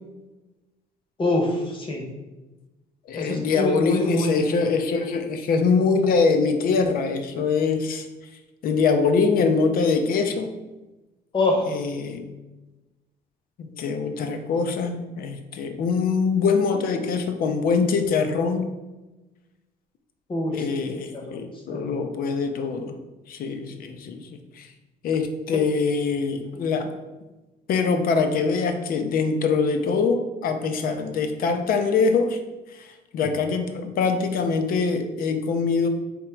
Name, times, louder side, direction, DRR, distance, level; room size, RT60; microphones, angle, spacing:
voice 1, 1.2-2.0 3.2-4.4 11.3-11.7 20.3-20.8 21.1-21.4 21.7-22.0, left 2 dB, 30° left, 1 dB, 0.9 m, -25 dB
voice 2, 3.1-8.1 8.6-10.5 11.7-12.3 13.6-18.7 20.5-23.0 23.3-24.7 25.0-26.9 27.7-32.4 32.7-35.9, left 4 dB, 60° left, 7 dB, 0.6 m, -23 dB
3.6 x 2.9 x 4.4 m, 1.1 s
cardioid pair, 110°, 17 cm